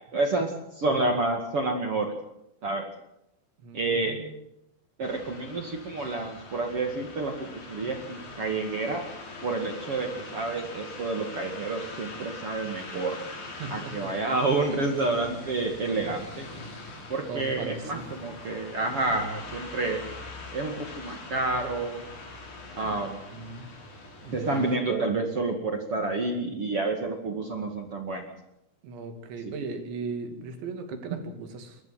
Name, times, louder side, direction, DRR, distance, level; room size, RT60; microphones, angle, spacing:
voice 1, 0.0-2.1 2.6-2.9 3.7-4.2 5.0-9.1 9.4-13.2 13.7-16.5 17.1-20.0 20.5-22.0 22.8-23.2 24.3-28.3 29.4-29.5, right 3 dB, 40° right, 3 dB, 2.3 m, -29 dB
voice 2, 3.6-4.3 13.6-13.9 17.3-18.0 22.8-23.0 23.3-23.7 24.2-24.7 28.8-31.8, right 4 dB, 80° right, 5 dB, 5.0 m, -38 dB
sound 1, 5.0-24.8, left 2 dB, 45° left, 5.1 m, -43 dB
28.5 x 14.0 x 7.7 m, 0.83 s
omnidirectional pair, 5.2 m